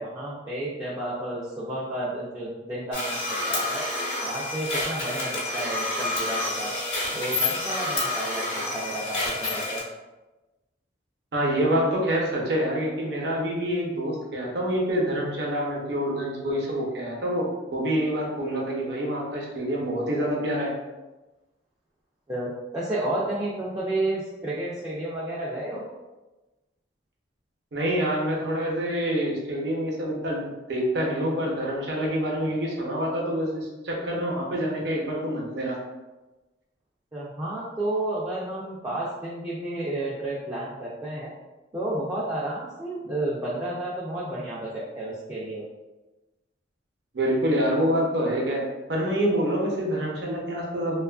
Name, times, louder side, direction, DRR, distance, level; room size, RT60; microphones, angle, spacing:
voice 1, 0.0-3.8 4.2-6.8 7.1-9.8 22.3-25.9 37.1-41.3 41.7-45.6, right 1 dB, 15° right, -7 dB, 0.4 m, -31 dB
sound 1, 2.9-9.8, left 2 dB, 75° left, 0.9 m, -29 dB
voice 2, 11.3-20.7 27.7-35.8 47.1-51.0, equal, 60° right, -2 dB, 0.7 m, -26 dB
2.9 x 2.3 x 2.3 m, 1.1 s
head